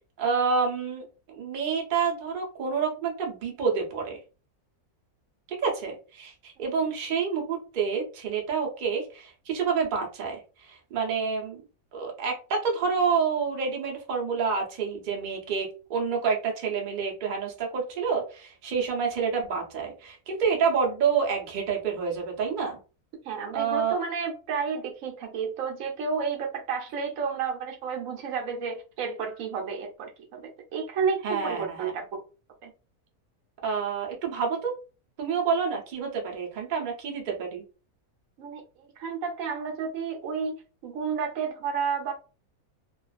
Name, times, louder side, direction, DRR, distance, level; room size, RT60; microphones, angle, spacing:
voice 1, 0.2-4.2 5.5-11.6 11.9-22.8 23.5-24.0 31.2-31.9 33.6-34.7 35.2-37.6, right 5 dB, 45° right, 0 dB, 0.6 m, -28 dB
voice 2, 23.2-32.0 32.6-32.7 38.4-38.6 39.0-40.6 40.8-42.1, right 6 dB, 70° right, 3 dB, 1.0 m, -31 dB
2.4 x 2.3 x 2.3 m, 0.33 s
omnidirectional pair, 1.6 m